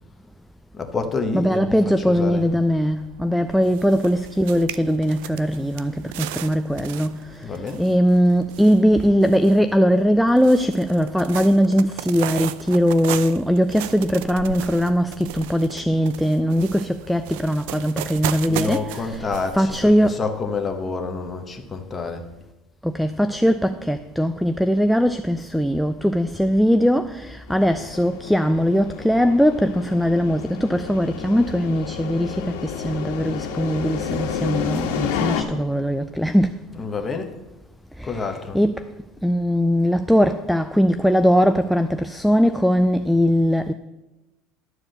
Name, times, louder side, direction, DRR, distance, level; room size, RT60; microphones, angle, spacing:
voice 1, 0.7-2.5 7.4-7.8 18.4-22.2 36.7-37.3 38.0-38.6, left 4 dB, 15° left, 1.2 m, -28 dB
voice 2, 1.3-7.5 7.8-19.3 19.5-20.2 22.8-36.6 38.0-38.8 39.2-43.7, equal, ahead, 0.3 m, -20 dB
sound 1, 2.1-20.1, right 12 dB, 75° right, 0.5 m, -36 dB
sound 2, 27.5-35.4, left 7 dB, 85° left, 1.4 m, -30 dB
11.5 x 4.8 x 7.7 m
cardioid pair, 145°, 0 cm